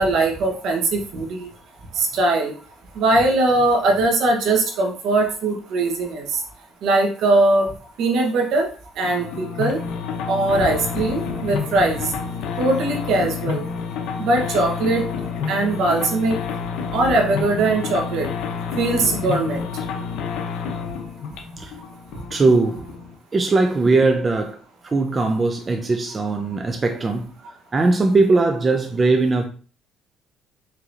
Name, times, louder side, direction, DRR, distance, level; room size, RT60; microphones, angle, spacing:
voice 1, 0.0-1.5 2.0-2.5 3.0-6.2 6.8-7.7 8.0-8.7 9.0-9.8 10.3-12.0 12.6-13.6 14.2-15.0 15.5-16.4 16.9-18.3 18.8-19.6, right 2 dB, 70° right, 1.1 m, -20 dB
sound 1, 9.0-23.1, left 6 dB, 75° left, 0.7 m, -29 dB
voice 2, 22.3-22.9 23.3-24.6 24.8-27.3 27.7-29.4, right 3 dB, 30° right, 0.6 m, -19 dB
4.8 x 3.0 x 2.6 m
supercardioid pair, 75°, 0 cm